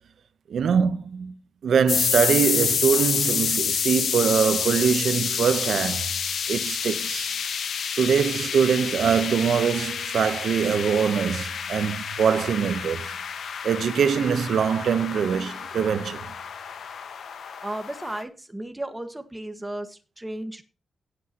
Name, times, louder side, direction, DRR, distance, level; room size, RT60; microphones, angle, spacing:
voice 1, 0.5-6.1 6.5-7.3 8.0-13.2 13.4-16.3, right 7 dB, 75° right, 0.9 m, -23 dB
sound 1, 1.9-18.2, left 7 dB, 85° left, 1.4 m, -29 dB
voice 2, 17.6-20.6, right 1 dB, 10° right, 1.6 m, -34 dB
17.5 x 8.1 x 3.0 m
wide cardioid pair, 120°, 0 cm